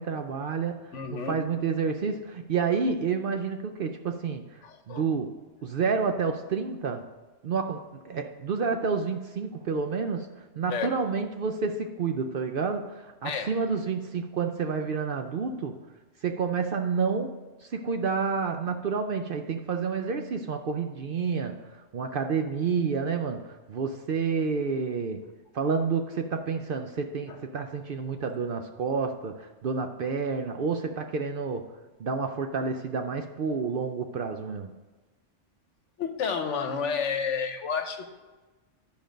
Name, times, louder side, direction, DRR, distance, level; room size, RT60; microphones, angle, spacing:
voice 1, 0.0-0.8 1.1-5.3 5.6-7.1 7.4-10.3 10.6-15.8 16.2-21.6 21.9-25.2 25.5-31.6 32.0-34.7, right 5 dB, 55° right, 6 dB, 0.6 m, -29 dB
voice 2, 0.9-1.4 4.6-5.0 10.7-10.9 13.2-13.5 36.0-38.1, left 6 dB, 75° left, 7 dB, 1.2 m, -30 dB
11.0 x 5.2 x 5.1 m, 1.2 s
omnidirectional pair, 1.3 m